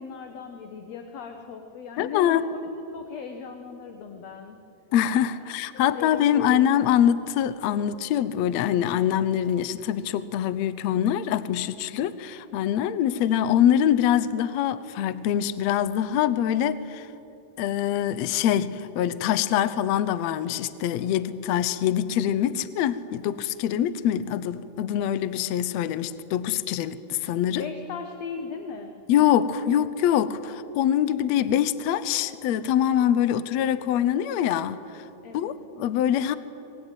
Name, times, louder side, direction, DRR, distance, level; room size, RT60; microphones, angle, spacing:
voice 1, 0.0-4.6 5.7-6.6 27.6-29.0 35.2-35.5, left 5 dB, 60° left, 2.0 m, -38 dB
voice 2, 2.0-2.4 4.9-17.1 17.6-27.7 29.1-34.8 35.3-36.4, left 10 dB, 80° left, 1.6 m, -24 dB
25.5 x 21.0 x 9.2 m
omnidirectional pair, 4.1 m